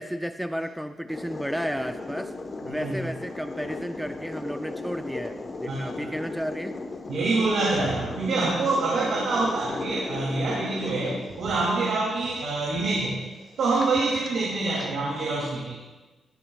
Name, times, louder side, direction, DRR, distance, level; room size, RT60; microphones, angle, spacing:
voice 1, 0.0-2.3 2.7-6.8, equal, ahead, 7 dB, 0.4 m, -33 dB
sound 1, 1.1-14.9, left 3 dB, 30° left, 1.0 m, -37 dB
voice 2, 2.6-3.0 5.7-6.1 7.1-13.2 13.6-15.8, right 3 dB, 80° right, -5 dB, 2.6 m, -26 dB
15.0 x 11.5 x 2.3 m, 1.2 s
wide cardioid pair, 155°, 0 cm